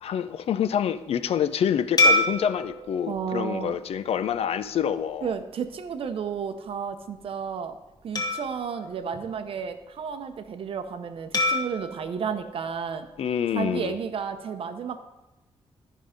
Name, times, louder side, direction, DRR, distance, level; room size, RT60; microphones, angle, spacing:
voice 1, 0.0-5.3 13.2-13.9, left 8 dB, 70° left, 0.4 m, -27 dB
sound 1, 2.0-4.7 5.2-5.4 8.2-9.9 11.3-13.6, left 1 dB, 40° left, 1.4 m, -28 dB
voice 2, 3.1-3.8 5.2-7.8 8.0-13.1 13.5-15.0, right 6 dB, 60° right, 0.7 m, -32 dB
11.0 x 5.4 x 5.1 m
wide cardioid pair, 165°, 11 cm